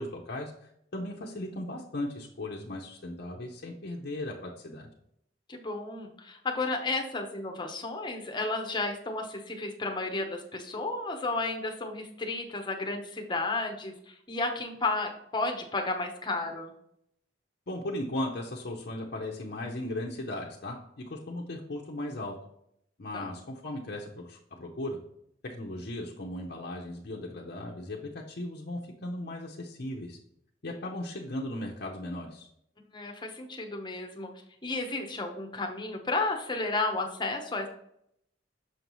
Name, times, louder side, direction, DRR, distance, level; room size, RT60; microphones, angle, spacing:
voice 1, 0.0-4.9 17.7-22.3 23.0-25.0 25.4-28.0 28.3-30.2 30.6-32.5, left 1 dB, 55° left, -2 dB, 0.7 m, -37 dB
voice 2, 5.5-16.7 23.1-23.3 32.9-34.3 34.6-37.7, left 3 dB, 25° left, 3 dB, 0.9 m, -32 dB
6.4 x 5.3 x 3.1 m, 0.73 s
head